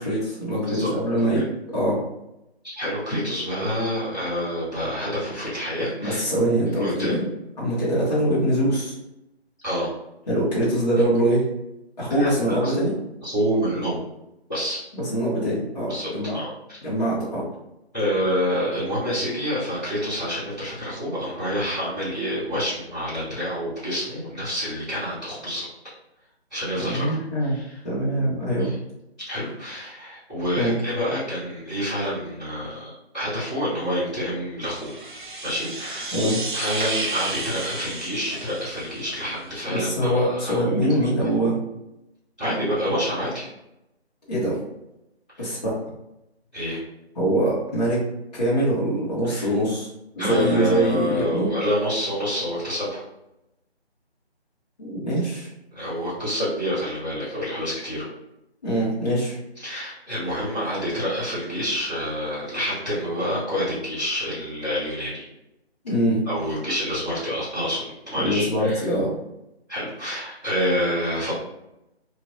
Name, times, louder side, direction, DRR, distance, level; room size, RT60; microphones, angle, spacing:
voice 1, 0.0-1.4 1.7-2.0 6.0-7.3 7.6-8.9 10.3-11.4 12.0-12.9 14.9-16.4 16.8-17.4 26.8-27.5 27.8-28.7 30.5-30.7 36.1-36.4 39.7-41.5 44.3-44.6 45.4-45.7 47.1-48.0 48.3-49.9 50.1-51.5 54.8-55.5 58.6-59.4 65.8-66.2 68.1-69.1, right 1 dB, 40° left, -9 dB, 1.0 m, -23 dB
voice 2, 2.6-6.3 6.8-7.2 9.6-9.9 12.1-12.9 13.2-14.0 14.5-14.8 15.9-16.5 17.9-25.7 26.5-27.0 27.4-27.8 28.6-28.7 29.2-34.9 35.4-36.1 36.5-41.0 42.4-43.5 45.3-45.5 46.5-46.8 49.3-49.5 50.2-53.0 55.7-58.1 59.6-65.2 66.2-68.8 69.7-71.3, equal, 5° left, -22 dB, 1.3 m, -28 dB
sound 1, 34.6-39.4, right 2 dB, 50° right, 0.4 m, -32 dB
3.1 x 2.5 x 2.6 m, 0.88 s
figure-of-eight pair, 175°, 33 cm